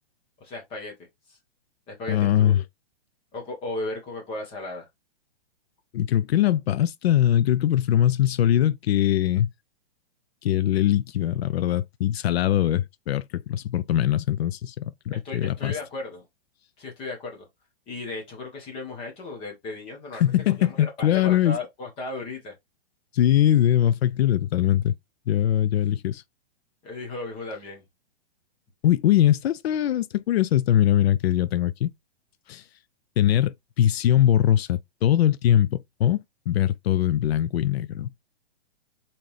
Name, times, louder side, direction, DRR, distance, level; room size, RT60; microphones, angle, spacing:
voice 1, 0.4-0.9 1.9-2.6 3.3-4.9 15.2-16.3 16.8-17.5 17.9-20.3 20.6-22.5 26.8-27.8, left 2 dB, 15° left, 1.3 m, -35 dB
voice 2, 2.1-2.6 5.9-9.5 10.4-15.8 20.2-21.6 23.1-24.9 25.3-26.2 28.8-31.9 32.5-32.6 33.2-38.1, left 11 dB, 80° left, 0.5 m, -22 dB
4.3 x 3.8 x 3.2 m
hypercardioid pair, 170°, 31 cm